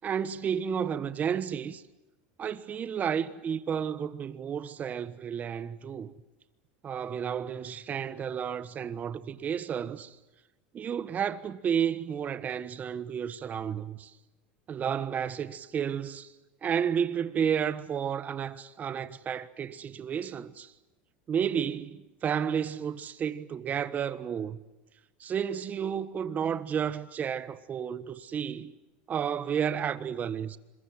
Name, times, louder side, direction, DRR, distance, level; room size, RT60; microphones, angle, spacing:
voice 1, 0.0-1.8 2.4-6.1 6.8-10.2 10.7-14.1 14.7-16.3 16.6-20.7 21.3-24.6 25.2-28.7 29.1-30.6, right 8 dB, 30° right, 1.4 m, -32 dB
26.5 x 23.0 x 7.7 m
supercardioid pair, 125°, 6 cm